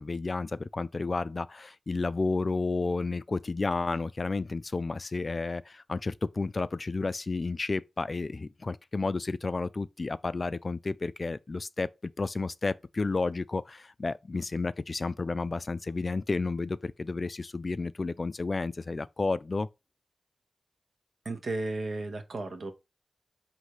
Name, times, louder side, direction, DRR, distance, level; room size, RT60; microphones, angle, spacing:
voice 1, 0.0-19.7, left 3 dB, 55° left, 0.3 m, -31 dB
voice 2, 21.2-22.7, right 2 dB, 75° right, 0.9 m, -34 dB
4.1 x 2.7 x 4.6 m
cardioid pair, 45°, 0 cm